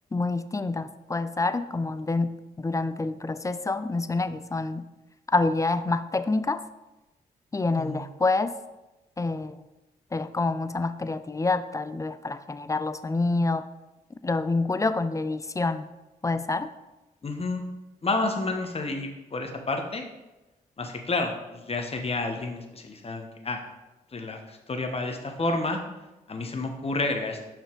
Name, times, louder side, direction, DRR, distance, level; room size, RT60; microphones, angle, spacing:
voice 1, 0.1-4.9 5.3-6.6 7.5-8.6 9.2-9.6 10.1-13.6 14.2-15.9 16.2-16.7, left 3 dB, 20° left, 12 dB, 0.4 m, -27 dB
voice 2, 7.7-8.1 17.2-17.6 18.0-20.1 20.8-23.6 24.1-25.8 26.3-27.4, left 2 dB, 35° left, 4 dB, 1.0 m, -30 dB
5.5 x 4.5 x 3.8 m, 1.0 s
supercardioid pair, 50°, 17 cm